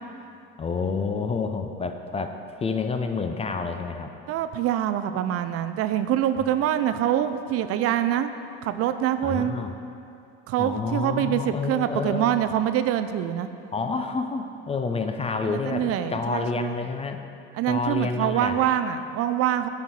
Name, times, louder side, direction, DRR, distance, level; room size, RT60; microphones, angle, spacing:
voice 1, 0.6-4.1 9.2-9.7 10.6-12.3 13.7-17.2 17.7-18.6, left 4 dB, 20° left, 7 dB, 0.4 m, -29 dB
voice 2, 4.3-8.3 8.6-9.6 10.5-13.5 15.4-16.8 17.6-19.7, right 11 dB, 50° right, 10 dB, 0.4 m, -25 dB
8.7 x 4.5 x 4.3 m, 2.7 s
hypercardioid pair, 80°, 31 cm